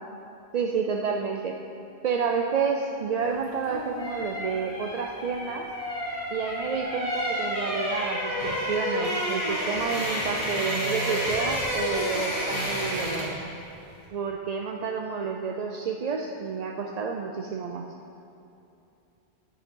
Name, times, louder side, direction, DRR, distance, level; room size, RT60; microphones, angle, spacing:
voice 1, 0.5-1.6 2.0-5.7 6.3-13.4 14.1-17.9, right 5 dB, 50° right, 2 dB, 0.5 m, -30 dB
sound 1, 3.4-13.4 13.7-13.9, equal, 35° left, 2.5 m, -30 dB
8.9 x 7.9 x 5.3 m, 2.8 s
omnidirectional pair, 1.1 m